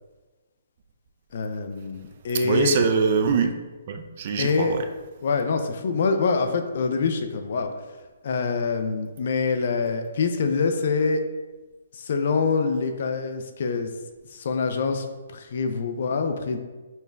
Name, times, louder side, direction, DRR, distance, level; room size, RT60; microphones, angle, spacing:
voice 1, 1.3-2.8 4.4-4.8 5.2-7.7 8.2-11.2 11.9-13.9 14.3-15.0 15.3-16.6, left 4 dB, 55° left, 6 dB, 0.4 m, -25 dB
voice 2, 2.4-3.5 3.9-4.8, right 6 dB, 45° right, 6 dB, 0.4 m, -23 dB
5.5 x 2.1 x 3.4 m, 1.2 s
figure-of-eight pair, 130°, 0 cm